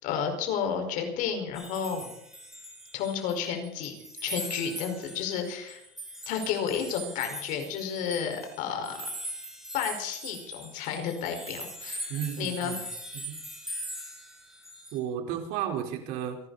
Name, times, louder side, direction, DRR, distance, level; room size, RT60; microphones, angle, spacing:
voice 1, 0.0-2.1 2.9-3.9 4.2-5.8 6.3-9.0 9.7-12.7, left 7 dB, 60° left, 5 dB, 5.1 m, -31 dB
sound 1, 1.5-3.4 3.6-15.0, equal, ahead, 6.8 m, -41 dB
voice 2, 12.1-12.8 13.1-13.4 14.9-16.4, right 9 dB, 65° right, 4 dB, 4.3 m, -33 dB
28.0 x 12.0 x 4.2 m, 0.79 s
supercardioid pair, 135°, 15 cm